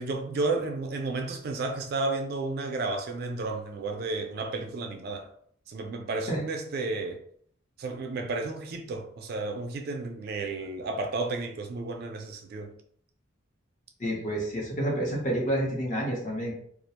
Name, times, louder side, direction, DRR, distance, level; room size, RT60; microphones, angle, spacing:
voice 1, 0.0-5.3 5.7-7.2 7.8-12.7, right 3 dB, 50° right, 5 dB, 0.3 m, -32 dB
voice 2, 14.0-16.5, right 1 dB, 40° left, -2 dB, 0.7 m, -29 dB
2.4 x 2.1 x 2.8 m, 0.62 s
head